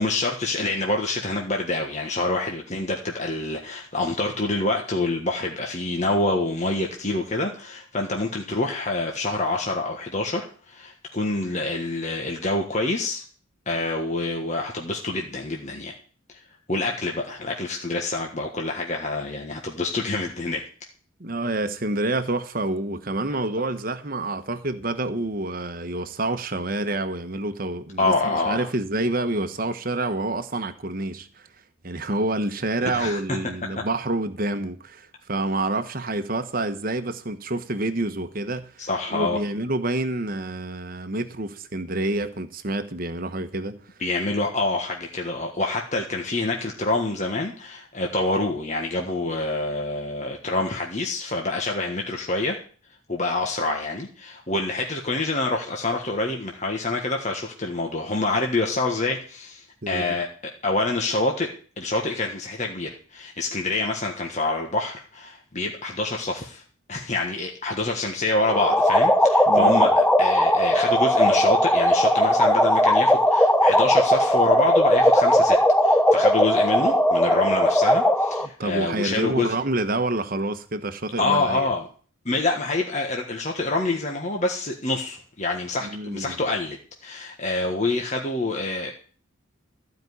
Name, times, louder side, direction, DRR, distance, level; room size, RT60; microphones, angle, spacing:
voice 1, 0.0-13.2 13.6-15.9 16.7-20.6 28.0-28.7 32.8-33.2 38.8-39.4 44.0-52.6 53.1-60.3 60.6-61.5 61.8-66.6 66.9-75.6 75.8-79.5 81.2-81.9 82.2-86.8 87.0-88.9, left 2 dB, 35° left, 1.5 m, -26 dB
voice 2, 21.2-31.5 31.8-43.8 59.8-60.2 69.5-69.9 78.6-81.7 85.8-86.4, right 2 dB, 45° right, 1.1 m, -28 dB
sound 1, 68.5-78.5, equal, 5° left, 0.7 m, -18 dB
14.5 x 5.3 x 9.6 m
head